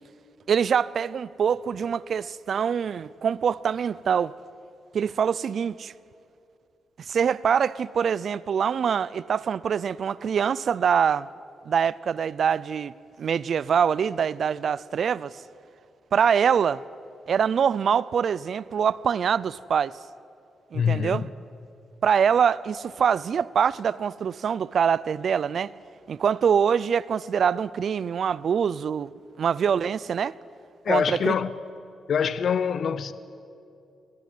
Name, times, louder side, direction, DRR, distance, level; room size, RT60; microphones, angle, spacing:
voice 1, 0.5-4.3 4.9-5.9 7.0-11.3 11.7-12.9 13.2-15.4 16.1-16.8 17.3-19.9 20.7-21.2 22.0-25.7 26.1-29.1 29.4-30.3 30.9-31.3, right 7 dB, 60° right, 0.5 m, -24 dB
voice 2, 20.7-21.3 30.8-31.5 32.1-33.1, left 7 dB, 65° left, 0.8 m, -24 dB
24.0 x 18.0 x 9.2 m
cardioid pair, 90°, 0 cm